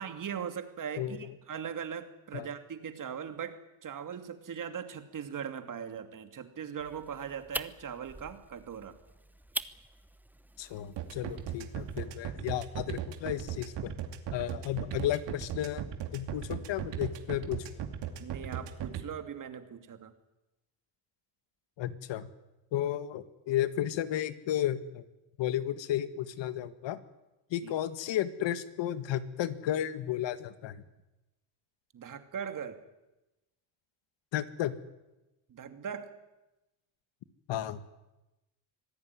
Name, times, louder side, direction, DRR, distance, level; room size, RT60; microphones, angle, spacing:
voice 1, 0.0-9.0 18.2-20.1 27.6-27.7 31.9-32.8 35.5-36.1, right 7 dB, 40° right, 8 dB, 2.6 m, -40 dB
voice 2, 1.0-1.3 2.3-2.5 10.6-13.9 14.3-15.9 16.1-17.7 21.8-22.3 22.7-25.0 25.4-27.0 27.5-30.8 34.3-34.7 37.5-37.8, left 12 dB, 65° left, 13 dB, 1.8 m, -33 dB
sound 1, 6.8-12.1, right 1 dB, 5° right, 0.8 m, -44 dB
sound 2, 11.0-19.0, right 10 dB, 65° right, 2.7 m, -37 dB
25.5 x 17.0 x 9.7 m, 0.99 s
cardioid pair, 135°, 46 cm